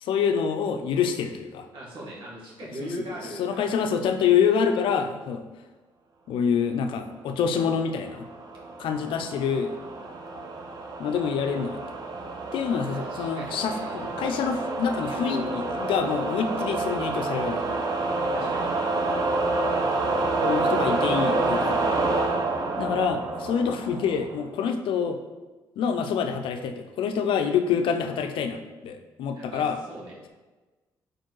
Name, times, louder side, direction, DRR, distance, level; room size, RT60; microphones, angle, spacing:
voice 1, 0.0-1.7 2.8-2.9 3.4-5.4 6.3-8.3 8.8-9.8 11.0-11.8 12.5-17.7 20.4-21.8 22.8-25.2 25.8-29.8, left 7 dB, 80° left, 7 dB, 0.6 m, -26 dB
voice 2, 1.7-3.7 9.0-9.2 12.8-14.1 15.1-15.6 18.3-18.7 29.3-30.3, right 1 dB, 70° right, -4 dB, 1.9 m, -40 dB
sound 1, 8.0-24.5, right 3 dB, 50° right, 0.9 m, -28 dB
4.6 x 4.4 x 4.6 m, 1.2 s
cardioid pair, 80°, 9 cm